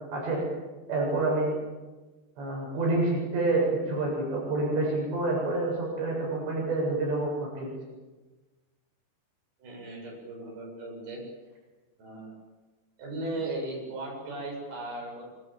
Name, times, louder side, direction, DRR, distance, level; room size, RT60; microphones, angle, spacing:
voice 1, 0.1-0.4 0.9-1.6 2.4-7.7, right 2 dB, 80° right, -2 dB, 10.0 m, -28 dB
voice 2, 9.6-11.2 12.0-12.4 13.0-15.3, right 2 dB, 60° right, -2 dB, 10.0 m, -37 dB
27.5 x 25.5 x 7.7 m, 1.2 s
omnidirectional pair, 5.0 m